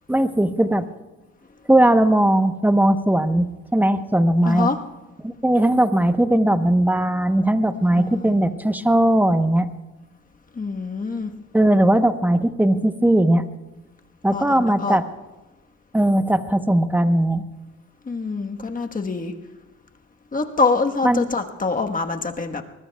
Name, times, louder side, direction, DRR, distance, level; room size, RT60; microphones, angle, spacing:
voice 1, 0.1-0.9 1.7-4.7 5.2-9.7 11.5-13.4 14.2-15.0 15.9-17.4 21.0-21.3, right 1 dB, 5° right, 9 dB, 0.9 m, -18 dB
voice 2, 4.4-4.8 7.9-8.4 10.5-11.3 14.3-15.0 18.0-19.3 20.3-22.6, left 4 dB, 25° left, 4 dB, 1.3 m, -25 dB
24.5 x 20.5 x 2.3 m, 1.1 s
cardioid pair, 90°, 30 cm